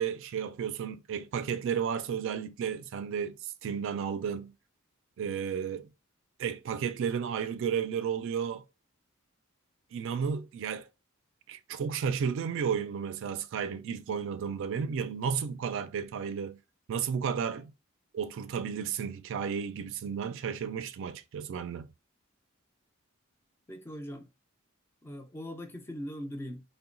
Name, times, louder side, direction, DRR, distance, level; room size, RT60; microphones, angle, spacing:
voice 1, 0.0-4.5 5.2-5.9 6.4-8.6 9.9-10.9 11.5-16.6 16.9-17.7 18.1-21.9, right 7 dB, 65° right, 0.3 m, -33 dB
voice 2, 23.7-24.3 25.0-26.6, equal, 10° left, 0.4 m, -40 dB
3.7 x 2.1 x 2.4 m
head